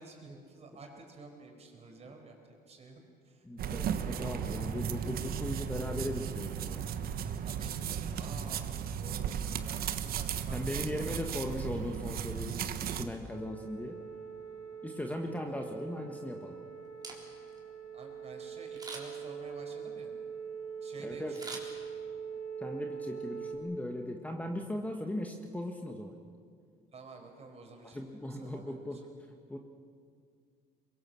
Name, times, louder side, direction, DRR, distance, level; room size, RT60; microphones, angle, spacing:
voice 1, 0.0-3.5 3.8-4.9 7.4-9.4 9.7-11.5 15.5-15.6 17.9-20.1 20.8-21.6 26.9-29.0, right 3 dB, 40° right, 3 dB, 4.8 m, -51 dB
voice 2, 3.4-6.9 10.5-14.0 14.8-16.6 21.0-21.5 22.6-26.1 27.9-29.6, left 1 dB, 10° left, 3 dB, 1.5 m, -38 dB
sound 1, 3.6-13.1, right 8 dB, 65° right, 1.2 m, -35 dB
sound 2, 13.3-23.6, right 6 dB, 80° left, 2.8 m, -43 dB
Camera, 16.8-17.6 18.7-19.3 21.3-22.3 22.7-22.8, right 3 dB, 25° right, 3.9 m, -45 dB
23.5 x 22.0 x 7.1 m, 2.1 s
cardioid pair, 110°, 17 cm